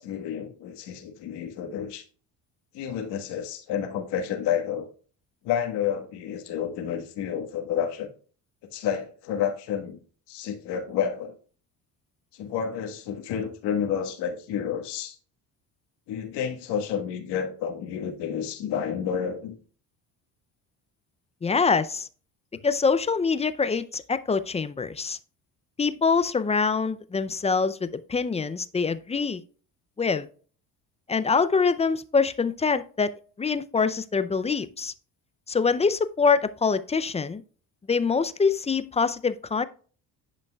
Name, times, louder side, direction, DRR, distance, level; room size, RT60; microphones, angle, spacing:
voice 1, 0.0-2.0 2.7-4.9 5.4-8.1 8.7-10.0 10.3-11.3 12.3-15.2 16.1-19.5, left 8 dB, 75° left, 1.5 m, -30 dB
voice 2, 21.4-22.1 22.6-25.2 25.8-29.4 30.0-30.3 31.1-33.1 33.4-34.9 35.5-37.4 37.9-39.7, left 5 dB, 15° left, 0.4 m, -24 dB
10.5 x 5.3 x 2.3 m
supercardioid pair, 95°, 41 cm